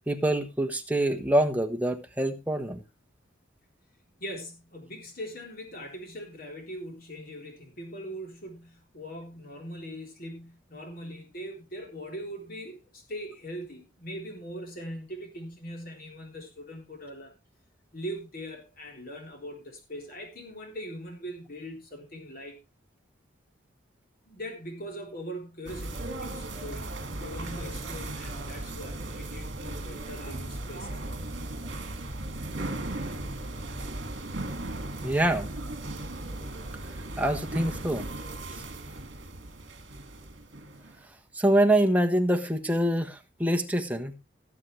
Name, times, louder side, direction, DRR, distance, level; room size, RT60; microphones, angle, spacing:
voice 1, 0.1-2.8 35.0-35.5 37.2-38.1 41.3-44.1, right 1 dB, 10° right, 1.1 m, -25 dB
voice 2, 4.2-17.3 17.9-22.6 24.3-26.9 27.2-31.1, equal, 45° left, 3.7 m, -41 dB
sound 1, 25.7-41.0, right 2 dB, 60° right, 2.2 m, -37 dB
18.0 x 7.6 x 3.2 m
head